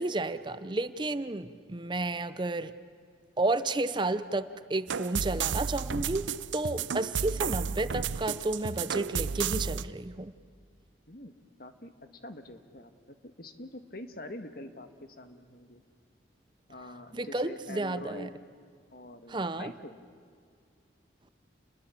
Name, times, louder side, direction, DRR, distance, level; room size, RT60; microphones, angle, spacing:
voice 1, 0.0-2.7 3.4-6.3 6.5-10.3 17.1-18.3 19.3-19.7, right 2 dB, 25° right, 13 dB, 0.6 m, -31 dB
sound 1, 4.9-9.9, right 6 dB, 90° right, 0.6 m, -32 dB
voice 2, 11.1-11.9 12.2-12.9 13.2-15.8 16.7-18.4 18.9-20.0, left 1 dB, 55° left, 8 dB, 1.7 m, -45 dB
29.5 x 21.0 x 8.5 m, 2.3 s
head